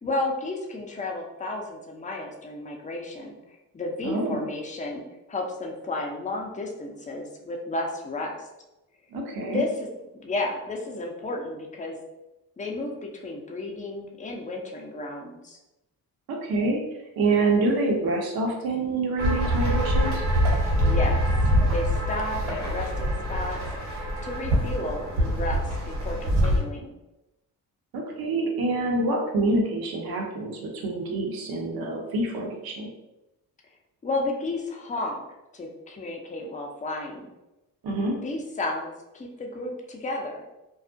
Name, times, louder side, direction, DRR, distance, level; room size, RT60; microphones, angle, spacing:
voice 1, 0.0-3.4 3.7-8.4 9.5-9.7 10.2-12.0 12.6-15.6 20.8-21.2 21.7-23.6 23.9-26.9 34.0-35.2 35.5-37.3 38.2-40.4, left 2 dB, 15° left, 0 dB, 0.6 m, -32 dB
voice 2, 4.0-4.5 9.1-9.6 16.3-16.8 17.2-20.2 27.9-32.9 37.8-38.2, right 2 dB, 55° right, 0 dB, 0.7 m, -26 dB
sound 1, 19.2-26.6, equal, 80° right, 1.2 m, -24 dB
2.3 x 2.0 x 2.6 m, 0.95 s
hypercardioid pair, 45°, 44 cm